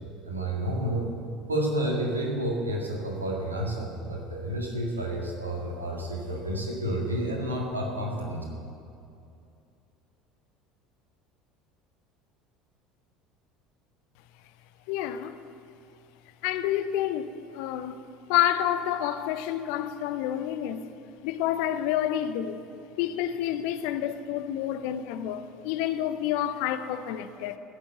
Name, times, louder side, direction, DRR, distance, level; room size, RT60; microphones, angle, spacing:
voice 1, 0.2-1.1 1.5-8.4, right 1 dB, 85° right, 1.9 m, -30 dB
voice 2, 14.9-15.4 16.4-18.0 18.3-20.8 21.2-22.6 23.0-27.6, left 11 dB, 60° left, 0.6 m, -29 dB
15.0 x 6.9 x 7.9 m
figure-of-eight pair, 65°, 0 cm